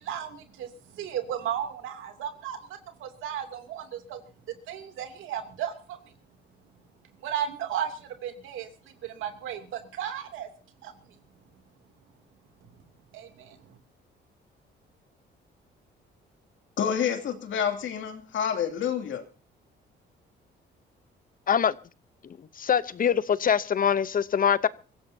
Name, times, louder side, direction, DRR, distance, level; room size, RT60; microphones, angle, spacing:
voice 1, 0.0-4.2 4.7-6.1 7.2-10.5 10.8-11.2 12.6-12.8 13.1-13.8, right 9 dB, 85° right, 2.8 m, -35 dB
voice 2, 16.8-19.2, left 8 dB, 70° left, 2.7 m, -28 dB
voice 3, 22.6-24.7, left 8 dB, 45° left, 0.8 m, -23 dB
24.0 x 15.5 x 2.8 m
cardioid pair, 90°, 20 cm